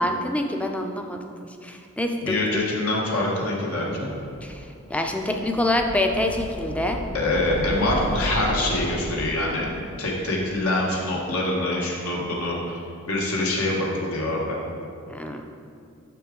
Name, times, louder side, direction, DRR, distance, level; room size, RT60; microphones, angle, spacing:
voice 1, 0.0-2.4 4.4-7.0 15.1-15.5, left 1 dB, 5° left, 4 dB, 0.4 m, -26 dB
voice 2, 2.2-4.1 7.1-9.7 10.0-12.8 13.1-14.6, left 2 dB, 80° left, -3 dB, 1.2 m, -25 dB
sound 1, 4.3-11.3, equal, 45° left, 0.8 m, -34 dB
6.9 x 5.8 x 3.7 m, 2.3 s
head